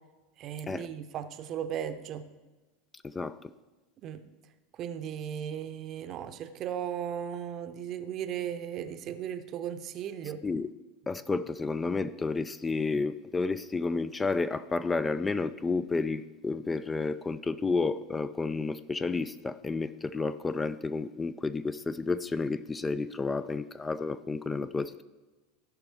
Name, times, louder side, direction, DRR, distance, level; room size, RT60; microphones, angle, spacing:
voice 1, 0.4-2.2 4.0-4.2 4.8-10.4, right 9 dB, 40° right, 0.7 m, -36 dB
voice 2, 3.0-3.4 10.4-10.7 11.1-25.0, left 4 dB, 15° left, 0.3 m, -31 dB
15.5 x 5.3 x 4.7 m
figure-of-eight pair, 80°, 0 cm